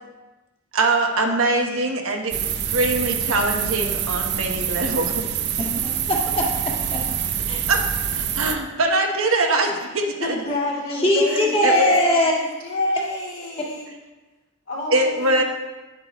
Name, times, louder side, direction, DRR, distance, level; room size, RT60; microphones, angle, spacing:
voice 1, 0.7-5.3 7.7-10.3 11.3-11.9 14.9-15.4, right 2 dB, 80° right, 2 dB, 1.2 m, -23 dB
sound 1, 2.3-8.6, right 9 dB, 55° right, 0.6 m, -26 dB
voice 2, 5.6-7.0 7.5-7.6 10.9-12.3, left 1 dB, 25° left, -2 dB, 1.6 m, -21 dB
voice 3, 10.2-13.9 14.7-15.4, left 1 dB, 60° left, -7 dB, 3.0 m, -28 dB
9.8 x 8.2 x 3.1 m, 1.2 s
head